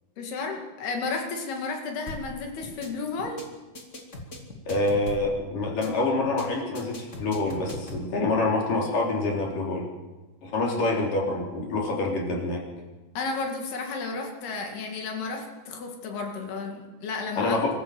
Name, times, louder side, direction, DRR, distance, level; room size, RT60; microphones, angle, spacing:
voice 1, 0.2-3.4 10.7-10.8 13.2-17.6, left 4 dB, 75° left, 3 dB, 4.3 m, -32 dB
sound 1, 2.1-2.3 2.6-2.9 3.2-3.4 3.7-5.3 5.6-5.9 6.2-6.4 6.7-8.1, left 2 dB, 20° left, 2.3 m, -39 dB
voice 2, 4.7-9.9 10.4-12.6 17.4-17.7, left 2 dB, 55° left, -1 dB, 5.2 m, -26 dB
24.5 x 14.0 x 8.0 m, 1.2 s
omnidirectional pair, 4.6 m